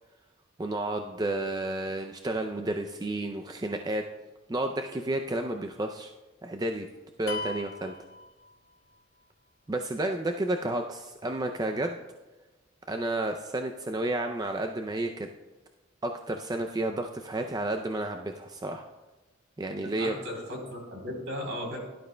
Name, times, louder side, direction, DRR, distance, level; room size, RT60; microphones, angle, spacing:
voice 1, 0.6-4.1 4.5-6.1 6.4-6.9 7.2-7.9 9.7-12.0 12.9-15.3 16.0-18.9 19.6-20.2, right 1 dB, 20° right, 4 dB, 0.4 m, -31 dB
sound 1, 7.3-9.0, left 2 dB, 60° left, 1.0 m, -39 dB
voice 2, 19.8-21.8, equal, 65° right, 1 dB, 3.7 m, -36 dB
17.0 x 12.0 x 2.2 m, 1.2 s
head